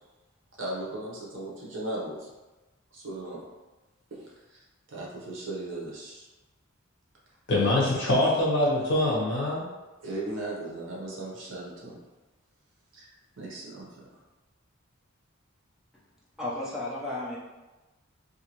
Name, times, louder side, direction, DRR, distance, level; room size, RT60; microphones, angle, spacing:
voice 1, 0.6-2.3 2.9-3.4 4.1-4.6 4.9-6.3 7.6-7.9 10.0-12.0 12.9-13.1 13.4-13.9, right 2 dB, 60° right, -4 dB, 0.8 m, -37 dB
voice 2, 7.5-9.7, left 1 dB, 55° left, -5 dB, 0.9 m, -24 dB
voice 3, 16.4-17.4, left 2 dB, ahead, -8 dB, 0.6 m, -33 dB
2.7 x 2.5 x 2.9 m, 1.1 s
head